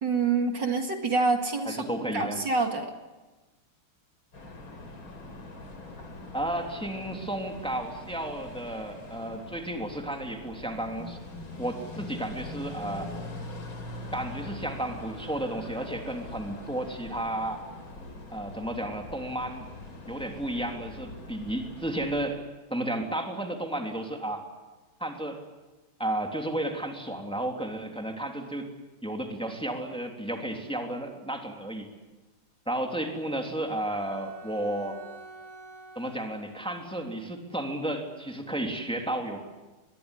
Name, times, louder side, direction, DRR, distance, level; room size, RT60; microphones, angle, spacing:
voice 1, 0.0-2.9, right 4 dB, 60° right, 5 dB, 2.6 m, -27 dB
voice 2, 1.7-2.4 6.3-11.2 11.6-13.1 14.1-17.6 18.3-19.7 20.1-22.4 22.7-24.4 25.0-25.4 26.0-28.7 29.0-31.9 32.7-35.0 35.9-39.5, right 1 dB, ahead, 3 dB, 3.1 m, -33 dB
sound 1, 4.3-22.3, left 2 dB, 70° left, 4.6 m, -42 dB
Bowed string instrument, 33.7-37.2, right 2 dB, 90° right, 8.5 m, -48 dB
24.0 x 21.5 x 10.0 m, 1.2 s
omnidirectional pair, 2.3 m